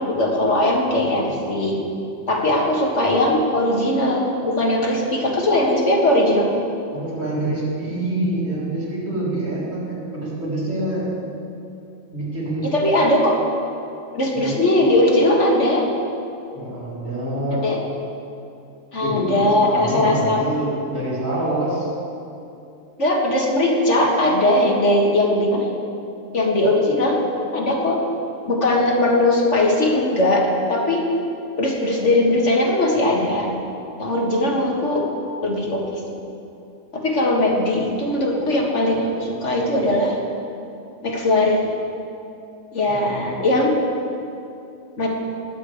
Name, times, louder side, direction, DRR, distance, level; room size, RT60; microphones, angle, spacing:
voice 1, 0.0-1.8 2.3-6.5 12.7-13.4 14.1-15.8 17.5-17.8 18.9-20.4 23.0-25.7 26.3-27.2 27.5-28.0 28.5-31.1 31.6-33.5 34.0-35.1 35.4-36.0 36.9-40.2 41.0-41.6 42.7-43.9 45.0-45.1, left 1 dB, 60° left, -1 dB, 2.1 m, -19 dB
voice 2, 6.9-11.1 12.1-12.7 14.3-14.6 16.5-17.6 19.0-21.9 42.9-43.5, right 1 dB, 70° right, -8 dB, 4.5 m, -26 dB
20.0 x 9.0 x 4.9 m, 2.7 s
omnidirectional pair, 1.4 m